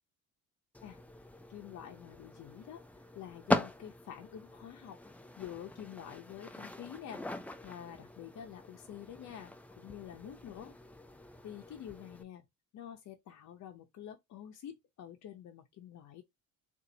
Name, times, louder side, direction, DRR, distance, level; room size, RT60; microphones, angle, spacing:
sound 1, 0.7-12.2, left 2 dB, 5° left, 0.4 m, -41 dB
voice 1, 1.5-2.8 3.1-5.0 5.4-7.2 7.6-10.7 11.4-12.4 12.7-16.2, left 10 dB, 55° left, 0.7 m, -47 dB
4.0 x 2.5 x 2.7 m
cardioid pair, 110°, 34 cm